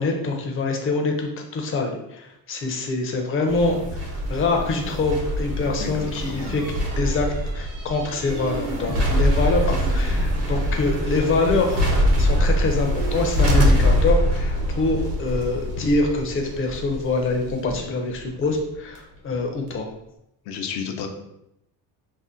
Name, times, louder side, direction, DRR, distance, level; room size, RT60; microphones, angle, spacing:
voice 1, 0.0-6.6 7.0-7.3 7.5-11.9 12.2-19.9, left 3 dB, 35° left, 3 dB, 0.5 m, -25 dB
sound 1, 3.5-19.0 19.3-19.4, equal, 75° right, 1.0 m, -24 dB
voice 2, 5.8-6.5 20.5-21.1, left 6 dB, 85° left, 5 dB, 0.6 m, -32 dB
sound 2, 6.1-14.8, equal, 40° right, 0.6 m, -33 dB
2.7 x 2.1 x 3.7 m, 0.83 s
cardioid pair, 145°, 37 cm